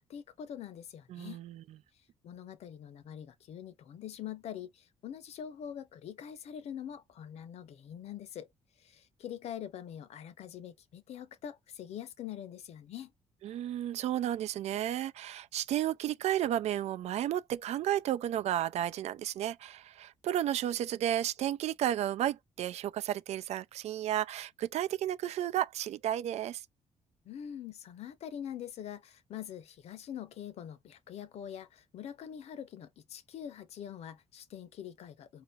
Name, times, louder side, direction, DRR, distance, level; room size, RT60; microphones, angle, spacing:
voice 1, 0.0-1.4 2.2-8.5 8.8-13.1 27.2-35.4, left 9 dB, 70° left, 0.9 m, -44 dB
voice 2, 1.1-1.6 13.4-26.6, right 11 dB, 70° right, 0.5 m, -32 dB
4.9 x 2.8 x 3.2 m
cardioid pair, 130°, 11 cm